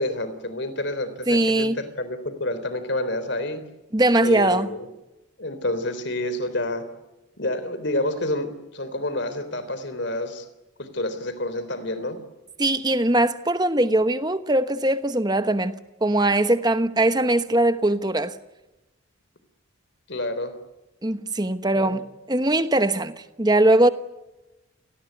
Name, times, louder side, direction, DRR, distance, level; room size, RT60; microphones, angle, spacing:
voice 1, 0.0-3.6 4.2-4.9 5.4-6.9 7.4-10.5 10.8-12.2 20.1-20.6 21.8-22.0, left 1 dB, 55° left, 3.6 m, -28 dB
voice 2, 1.3-1.8 3.9-4.7 12.6-18.3 21.0-23.9, right 1 dB, 20° right, 1.1 m, -21 dB
29.0 x 19.5 x 9.5 m
head